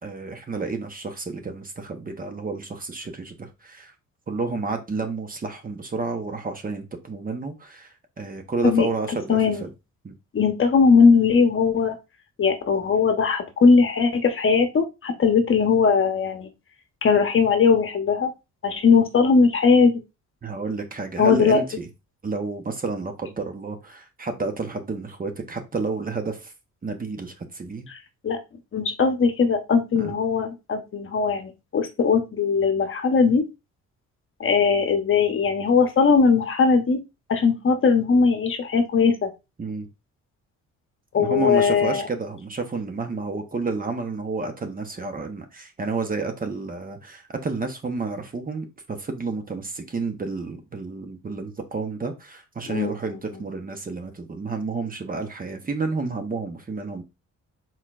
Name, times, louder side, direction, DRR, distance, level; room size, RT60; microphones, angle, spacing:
voice 1, 0.0-3.9 4.3-9.7 10.0-10.1 20.4-21.9 22.2-26.5 26.8-27.9 29.9-30.1 39.6-39.9 41.2-57.0, right 4 dB, 30° right, 1.0 m, -30 dB
voice 2, 9.3-9.6 10.3-11.9 12.4-16.5 17.0-18.3 18.6-20.0 21.2-21.6 27.9-28.0 28.2-28.4 28.7-33.4 34.4-37.0 37.3-39.3 41.1-42.0 52.7-52.9, left 5 dB, 45° left, 1.0 m, -19 dB
4.3 x 4.1 x 2.5 m
cardioid pair, 90°, 30 cm